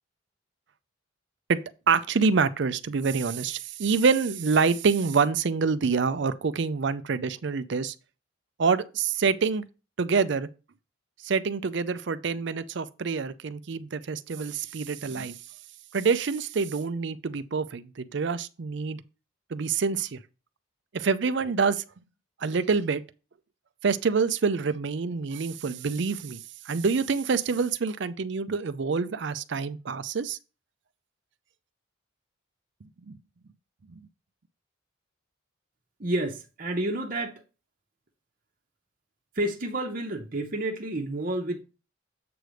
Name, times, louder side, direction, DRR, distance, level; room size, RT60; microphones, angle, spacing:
voice 1, 1.9-7.9 8.6-9.6 10.0-10.5 11.2-15.4 15.9-19.0 19.5-20.2 20.9-21.8 22.4-23.0 23.8-30.4 33.1-33.2, right 5 dB, 60° right, 0.5 m, -26 dB
voice 2, 36.0-37.4 39.3-41.6, right 1 dB, 40° right, 0.9 m, -30 dB
7.8 x 3.3 x 6.3 m
head